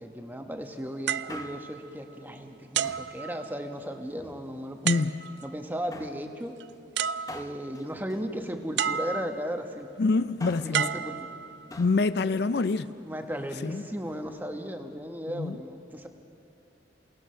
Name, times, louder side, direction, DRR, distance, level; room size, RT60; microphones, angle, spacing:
voice 1, 0.0-4.9 5.4-6.6 7.3-9.9 10.6-11.3 13.0-16.1, equal, 10° right, 1.2 m, -36 dB
sound 1, 1.1-2.3 2.7-3.9 4.9-5.6 6.6-6.7 7.0-7.8 8.8-9.6 10.7-11.8 12.6-12.8, right 8 dB, 65° right, 0.4 m, -32 dB
Male speech man speaking, 1.3-1.9 2.8-3.2 4.0-4.8 5.9-6.3 7.3-8.9 10.2-10.8 11.7-12.0 12.3-12.4, left 2 dB, 20° left, 0.8 m, -46 dB
voice 2, 4.8-5.4 10.0-10.9 11.8-12.9 13.6-13.8 15.3-15.6, left 3 dB, 60° left, 0.4 m, -26 dB
27.5 x 18.5 x 5.7 m
head